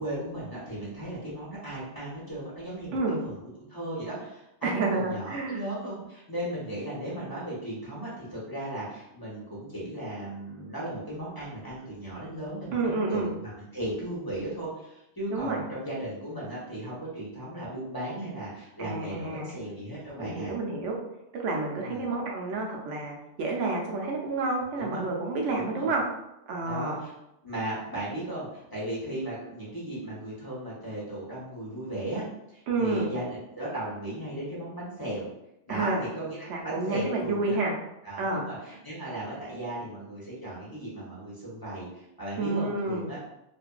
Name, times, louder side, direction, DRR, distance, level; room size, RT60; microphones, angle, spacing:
voice 1, 0.0-3.4 3.7-20.5 21.8-22.1 24.8-25.0 25.5-25.9 26.7-27.1 27.4-32.2 32.5-35.3 35.7-37.6 38.0-43.2, right 1 dB, 20° left, -8 dB, 0.7 m, -36 dB
voice 2, 2.9-3.2 4.6-5.6 12.7-13.3 15.3-15.6 18.8-19.5 20.2-20.9 21.3-26.0 26.5-27.0 32.7-33.1 35.7-36.0 36.5-37.7 38.2-38.4 42.4-43.1, right 3 dB, 80° right, 0 dB, 0.9 m, -29 dB
2.6 x 2.4 x 2.2 m, 0.86 s
omnidirectional pair, 1.2 m